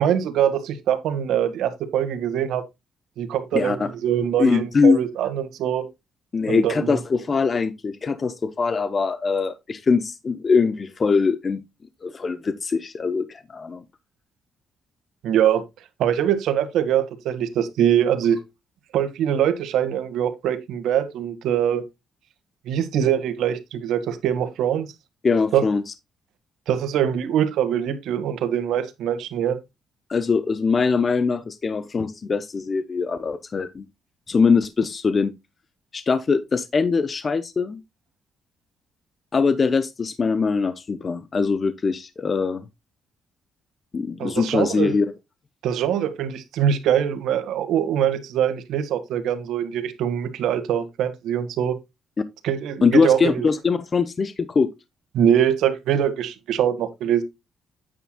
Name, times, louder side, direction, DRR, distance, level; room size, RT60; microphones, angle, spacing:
voice 1, 0.0-2.6 3.2-5.9 6.5-7.0 15.2-15.6 16.0-18.4 18.9-21.8 22.7-24.9 25.5-25.6 26.7-29.6 44.2-44.9 45.6-51.8 52.4-53.5 55.1-57.2, right 9 dB, 85° right, 1.7 m, -23 dB
voice 2, 3.5-3.9 4.4-5.0 6.3-11.6 12.0-13.8 25.2-25.8 30.1-33.8 34.3-35.3 35.9-37.8 39.3-42.6 43.9-45.1 52.8-54.7, left 5 dB, 35° left, 0.8 m, -22 dB
9.5 x 9.0 x 2.3 m
cardioid pair, 90°, 0 cm